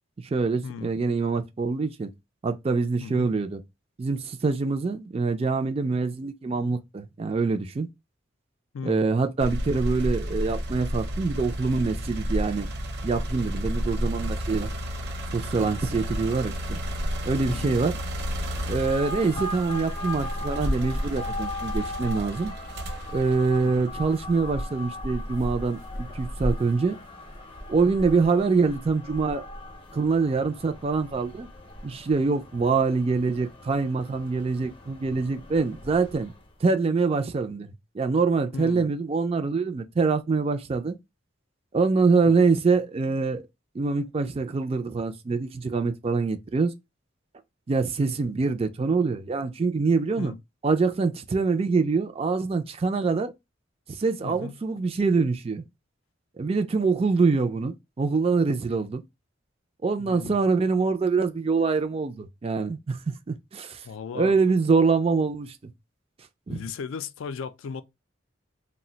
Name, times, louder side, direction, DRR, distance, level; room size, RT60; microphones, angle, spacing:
voice 1, 0.2-2.1 2.4-3.6 4.0-7.9 8.8-12.7 13.0-14.7 15.3-16.8 17.2-18.0 18.7-22.5 23.1-27.0 27.7-29.4 29.9-31.5 31.8-36.3 36.6-41.0 41.7-43.4 43.7-46.7 47.7-50.3 50.6-53.3 54.0-55.6 56.4-59.0 59.8-63.9 64.1-65.7 66.5-66.6, right 4 dB, 30° right, 0.3 m, -25 dB
voice 2, 3.0-3.3 8.7-9.1 17.5-17.8 23.6-23.9 38.5-38.9 42.2-42.3 50.2-50.4 54.2-54.6 60.0-60.4 63.8-64.4 66.5-67.8, left 6 dB, 85° left, 0.4 m, -36 dB
sound 1, 9.4-24.4 25.0-26.2, equal, 55° right, 0.7 m, -32 dB
sound 2, 13.4-28.6, equal, 85° right, 0.9 m, -39 dB
sound 3, 18.6-36.5, left 1 dB, 25° left, 0.5 m, -39 dB
2.4 x 2.1 x 3.8 m
head